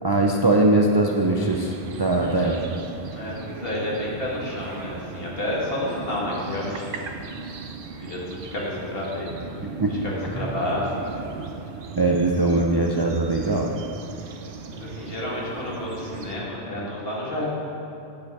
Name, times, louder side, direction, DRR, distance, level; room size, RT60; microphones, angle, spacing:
voice 1, 0.0-2.6 9.6-10.0 10.4-10.5 12.0-13.7, right 2 dB, 30° right, 0 dB, 0.4 m, -21 dB
London Park by tree lined Pond, 1.1-16.3, right 4 dB, 60° right, 0.8 m, -38 dB
voice 2, 2.2-2.6 3.1-7.1 7.4-7.5 7.9-9.3 9.9-11.3 14.7-17.5, left 1 dB, 60° left, -5 dB, 2.1 m, -30 dB
8.7 x 8.4 x 4.7 m, 2.9 s
omnidirectional pair, 1.1 m